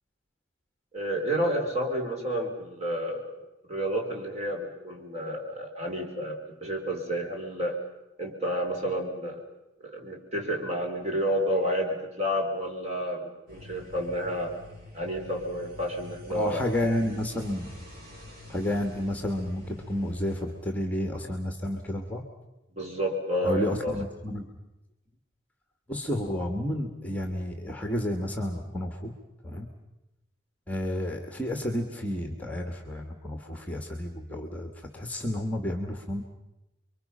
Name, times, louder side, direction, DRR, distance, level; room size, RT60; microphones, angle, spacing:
voice 1, 0.9-3.4 3.7-7.8 8.2-9.4 9.8-14.5 14.9-16.6 22.7-24.0, equal, 35° right, 1 dB, 4.3 m, -30 dB
sound 1, 13.5-20.4, left 2 dB, 50° right, 7.3 m, -47 dB
voice 2, 16.3-17.8 18.5-22.2 23.4-24.5 25.9-29.1 29.4-29.7 30.7-36.2, left 1 dB, 10° left, 4 dB, 1.8 m, -31 dB
29.5 x 23.5 x 5.7 m, 0.95 s
head